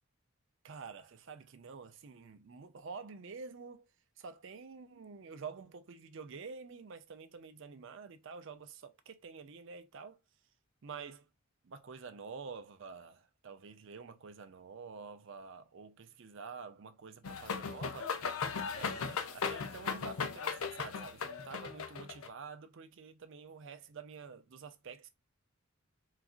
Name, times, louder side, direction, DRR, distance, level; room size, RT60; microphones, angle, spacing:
voice 1, 0.6-3.9 4.2-10.2 10.8-11.3 11.6-18.1 18.7-25.1, right 5 dB, 60° right, 0.5 m, -48 dB
sound 1, 17.2-22.3, left 5 dB, 85° left, 0.6 m, -37 dB
3.9 x 2.4 x 2.4 m
head